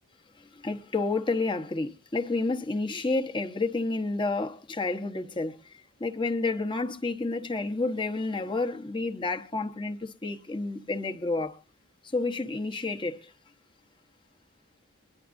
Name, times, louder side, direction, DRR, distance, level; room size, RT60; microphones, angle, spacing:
voice 1, 0.5-11.6 12.1-13.3, left 3 dB, 20° left, 1.0 m, -30 dB
22.5 x 11.0 x 2.6 m
head